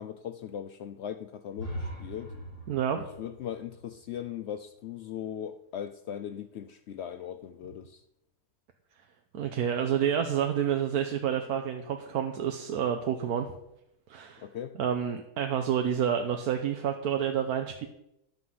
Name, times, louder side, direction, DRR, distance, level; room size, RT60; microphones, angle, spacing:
voice 1, 0.0-2.3 2.9-8.0 14.4-14.8, left 9 dB, 80° left, 0.6 m, -39 dB
sound 1, 1.5-5.4, equal, 60° left, 5.2 m, -42 dB
voice 2, 2.7-3.0 9.3-13.5 14.1-14.4 14.8-17.9, right 8 dB, 70° right, 1.3 m, -29 dB
11.0 x 5.7 x 7.7 m
omnidirectional pair, 1.7 m